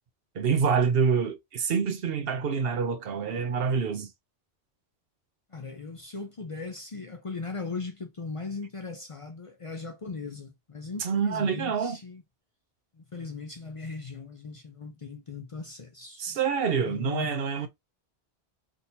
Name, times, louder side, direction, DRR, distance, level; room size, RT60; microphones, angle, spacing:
voice 1, 0.3-4.1 11.0-12.0 16.2-17.7, right 6 dB, 65° right, 0.9 m, -26 dB
voice 2, 5.5-12.2 13.0-16.4 16.9-17.3, left 4 dB, 40° left, 0.5 m, -38 dB
3.6 x 2.6 x 2.8 m
omnidirectional pair, 1.1 m